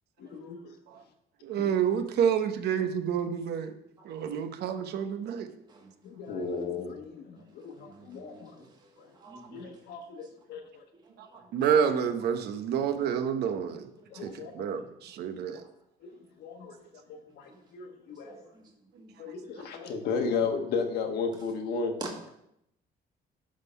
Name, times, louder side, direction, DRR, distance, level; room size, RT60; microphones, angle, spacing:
voice 1, 0.2-0.7 1.6-1.7 6.0-8.6 9.0-9.1 9.5-10.8 14.1-14.7 16.0-16.1 16.4-18.4 19.2-21.9, left 5 dB, 70° left, 1.3 m, -35 dB
voice 2, 1.4-3.7 4.0-5.5 11.5-13.9 14.2-15.6, right 8 dB, 75° right, 0.9 m, -28 dB
voice 3, 7.8-9.7 10.9-11.6 14.0-14.4 17.3-17.6 18.2-19.1 19.4-19.7 22.0-22.1, right 3 dB, 25° right, 1.4 m, -48 dB
10.5 x 3.7 x 5.6 m
cardioid pair, 160°, 17 cm